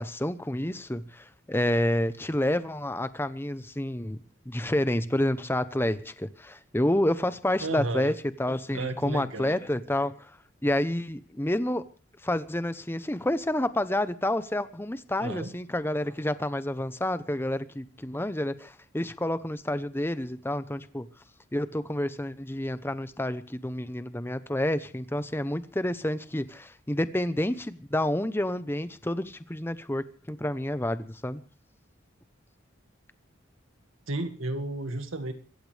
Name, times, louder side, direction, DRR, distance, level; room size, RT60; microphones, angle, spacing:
voice 1, 0.0-4.2 4.5-10.3 10.6-11.9 12.2-21.1 21.5-31.4, left 1 dB, 10° left, 0.8 m, -29 dB
voice 2, 7.6-8.1 8.7-9.6 15.2-15.5 34.1-35.3, right 2 dB, 85° right, 2.0 m, -32 dB
25.0 x 15.0 x 3.4 m
head